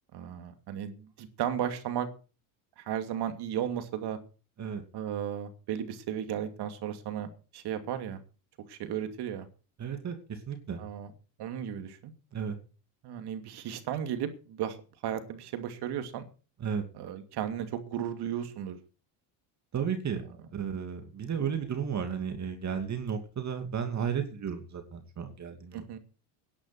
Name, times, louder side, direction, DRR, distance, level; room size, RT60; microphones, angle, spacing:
voice 1, 0.1-2.1 2.8-4.2 4.9-8.2 8.7-9.5 10.8-11.1 11.4-12.1 13.0-14.8 15.0-16.2 16.9-18.8 25.7-26.0, right 9 dB, 60° right, 8 dB, 2.7 m, -35 dB
voice 2, 9.8-10.8 12.3-12.6 16.6-16.8 19.7-20.2 20.5-26.0, right 7 dB, 35° right, 6 dB, 2.7 m, -33 dB
11.5 x 11.0 x 6.0 m, 0.35 s
supercardioid pair, 105°, 45 cm